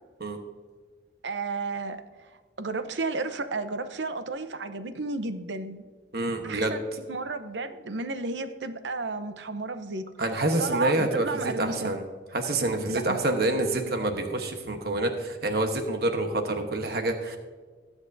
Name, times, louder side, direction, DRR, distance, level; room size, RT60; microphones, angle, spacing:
voice 1, 1.2-2.0 2.6-5.8 6.4-6.8 7.1-10.1 10.6-12.0 12.9-13.2, right 3 dB, 80° right, 10 dB, 0.8 m, -32 dB
voice 2, 6.1-6.7 10.2-11.3 11.6-12.0 12.3-17.4, right 2 dB, 60° right, 5 dB, 1.2 m, -27 dB
20.0 x 8.1 x 2.7 m, 1.5 s
head